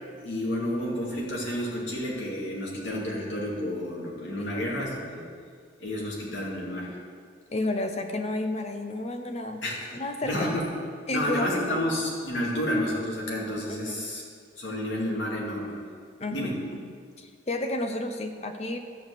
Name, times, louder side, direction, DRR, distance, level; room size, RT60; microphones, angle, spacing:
voice 1, 0.2-5.2 5.8-6.9 9.6-9.9 10.2-10.6 11.1-14.2 14.6-15.8 16.3-16.6, left 1 dB, 80° left, -4 dB, 2.4 m, -30 dB
voice 2, 4.4-4.7 7.5-9.6 9.9-10.5 11.1-11.8 13.7-14.0 16.2-18.8, left 1 dB, 35° left, 6 dB, 0.7 m, -32 dB
12.0 x 4.7 x 8.0 m, 2.1 s
head